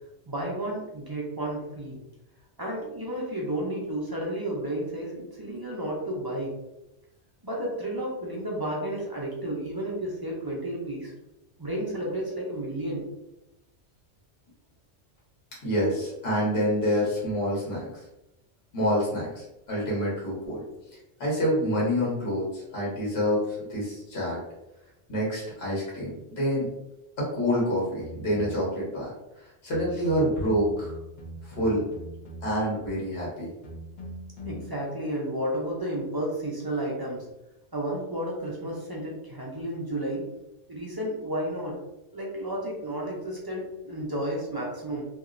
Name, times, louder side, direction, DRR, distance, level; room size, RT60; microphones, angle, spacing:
voice 1, 0.3-2.0 2.6-6.6 7.4-11.1 11.6-13.1 34.5-37.3 37.7-40.2 40.7-41.8 42.1-45.1, right 1 dB, 35° right, -4 dB, 0.4 m, -32 dB
voice 2, 15.6-17.9 18.7-20.6 21.2-23.4 23.7-24.4 25.1-26.7 27.2-29.1 29.6-30.9 31.4-31.8 32.4-33.5, equal, 65° left, -5 dB, 1.3 m, -27 dB
sound 1, 28.0-28.8 29.7-32.7 33.6-34.7, equal, 50° left, 0.7 m, -41 dB
2.9 x 2.7 x 2.5 m, 0.93 s
omnidirectional pair, 1.1 m